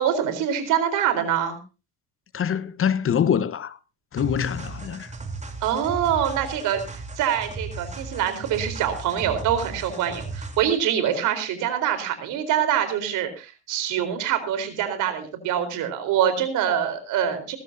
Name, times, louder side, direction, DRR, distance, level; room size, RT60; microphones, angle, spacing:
voice 1, 0.0-1.6 5.6-17.6, right 9 dB, 65° right, 4.1 m, -25 dB
voice 2, 2.3-3.8 4.1-5.1, left 8 dB, 40° left, 1.1 m, -24 dB
sound 1, 4.2-10.8, right 3 dB, 20° right, 3.6 m, -36 dB
20.0 x 15.0 x 2.7 m
hypercardioid pair, 55°, 34 cm